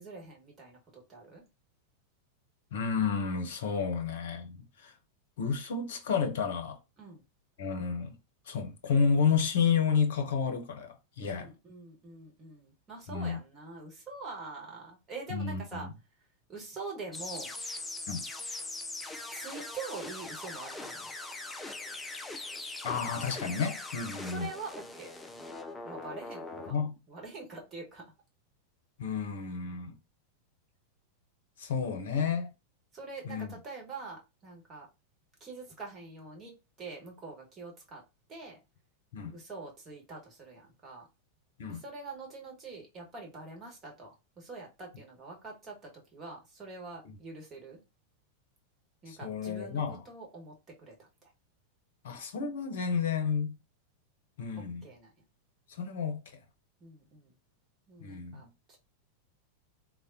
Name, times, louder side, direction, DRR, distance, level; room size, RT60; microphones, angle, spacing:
voice 1, 0.0-1.4 7.0-7.2 11.2-15.9 16.5-17.5 19.3-21.1 24.3-25.1 25.8-26.8 27.1-28.1 32.9-34.9 35.4-36.5 36.8-38.0 38.3-38.6 39.3-41.1 41.7-47.8 49.0-50.9 54.8-55.1 56.8-57.3 57.9-58.8, right 3 dB, 25° right, 1.2 m, -45 dB
voice 2, 2.7-4.9 5.4-6.8 7.6-8.1 8.5-11.5 13.1-13.4 15.3-15.9 18.1-18.3 22.8-24.5 26.7-27.0 29.0-30.0 31.6-32.5 33.2-33.5 39.1-39.4 41.6-41.8 49.1-50.0 52.0-53.6 54.4-54.9 55.7-56.2 58.0-58.5, left 6 dB, 60° left, 0.7 m, -31 dB
sound 1, 17.1-26.7, left 2 dB, 10° left, 0.4 m, -41 dB
3.3 x 2.1 x 2.6 m
figure-of-eight pair, 90°, 0 cm